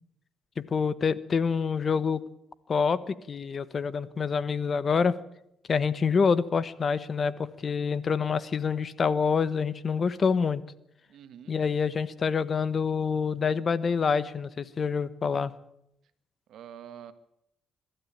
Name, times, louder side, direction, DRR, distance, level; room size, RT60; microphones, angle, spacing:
voice 1, 0.6-2.2 2.7-5.1 5.7-10.6 11.5-15.5, left 5 dB, 45° left, 16 dB, 1.2 m, -26 dB
voice 2, 11.1-11.5 16.5-17.1, right 9 dB, 75° right, 11 dB, 1.6 m, -46 dB
23.0 x 13.0 x 8.8 m, 0.79 s
cardioid pair, 90°, 0 cm